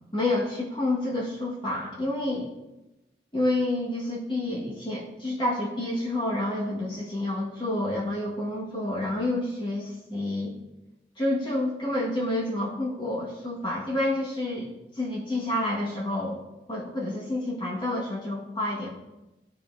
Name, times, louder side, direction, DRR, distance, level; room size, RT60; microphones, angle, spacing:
voice 1, 0.1-2.5 3.3-10.5 11.2-16.4 16.7-18.9, left 1 dB, 25° left, -5 dB, 1.9 m, -29 dB
15.0 x 5.6 x 2.8 m, 0.99 s
head